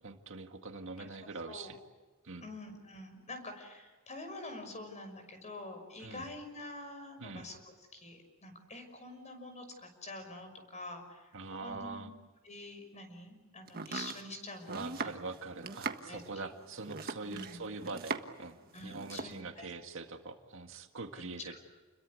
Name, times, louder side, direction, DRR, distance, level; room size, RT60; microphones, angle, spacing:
voice 1, 0.0-1.8 2.2-2.5 6.0-6.3 7.2-7.5 11.3-12.1 14.7-18.6 18.8-21.6, right 3 dB, 65° right, 5 dB, 1.9 m, -43 dB
voice 2, 2.4-12.1 12.4-15.1 16.1-16.5 17.3-17.6 18.7-19.7 21.1-21.6, left 2 dB, 35° left, 7 dB, 6.0 m, -47 dB
Domestic sounds home sounds, 13.7-18.5 18.8-19.4, right 4 dB, 45° right, 1.5 m, -40 dB
30.0 x 22.0 x 8.3 m, 1.3 s
head